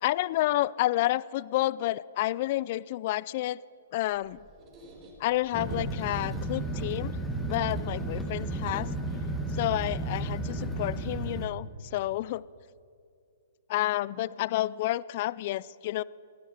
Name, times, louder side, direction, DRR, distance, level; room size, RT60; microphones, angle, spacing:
voice 1, 0.0-3.6 3.9-4.5 5.2-7.2 7.5-8.9 9.5-12.5 13.7-16.0, left 15 dB, 45° left, 21 dB, 0.3 m, -30 dB
Squeak, 4.0-9.3, right 2 dB, 25° right, 4.3 m, -49 dB
sound 1, 5.5-11.5, right 2 dB, ahead, 1.6 m, -33 dB
17.5 x 11.0 x 6.5 m, 2.4 s
hypercardioid pair, 140°, 0 cm